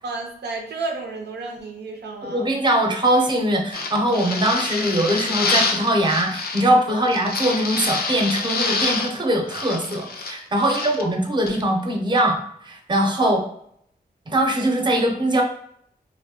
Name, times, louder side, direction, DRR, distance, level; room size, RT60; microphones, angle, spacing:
voice 1, 0.0-2.5 4.1-4.3 6.9-7.0 10.6-10.9 13.2-13.4, right 3 dB, 85° right, 2 dB, 0.4 m, -32 dB
voice 2, 2.2-13.4 14.3-15.4, right 1 dB, 25° right, 2 dB, 0.6 m, -21 dB
sound 1, 3.7-6.7 7.1-9.2 9.5-11.0 11.5-11.6, left 4 dB, 65° left, 0.4 m, -26 dB
2.3 x 2.1 x 2.7 m, 0.70 s
cardioid pair, 55°, 17 cm